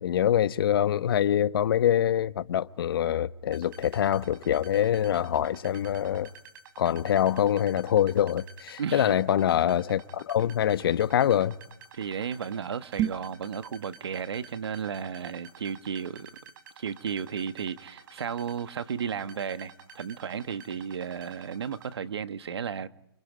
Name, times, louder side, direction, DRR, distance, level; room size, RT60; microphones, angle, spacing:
voice 1, 0.0-6.3 6.8-11.5, left 10 dB, 60° left, 1.0 m, -25 dB
sound 1, 3.5-21.9, right 5 dB, 50° right, 6.8 m, -50 dB
voice 2, 8.8-9.2 11.9-16.3 16.8-22.9, right 7 dB, 80° right, 1.4 m, -34 dB
sound 2, 12.9-13.4, right 11 dB, 25° right, 0.9 m, -30 dB
30.0 x 25.0 x 5.1 m
hypercardioid pair, 150°, 14 cm